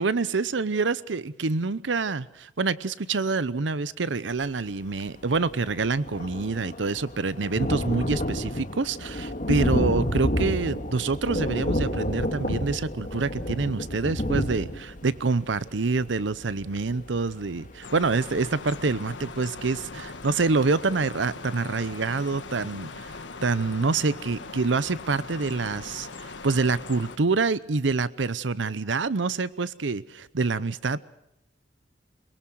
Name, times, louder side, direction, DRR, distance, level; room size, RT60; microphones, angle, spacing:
voice 1, 0.0-23.1 23.4-31.0, right 4 dB, 85° right, 17 dB, 0.7 m, -26 dB
Thunder, 5.1-5.2 5.4-18.0 18.5-18.6 18.9-19.0, left 1 dB, 45° left, 2.1 m, -30 dB
sound 1, 17.8-27.2, left 3 dB, 80° left, 1.5 m, -40 dB
23.0 x 22.5 x 6.3 m, 0.84 s
head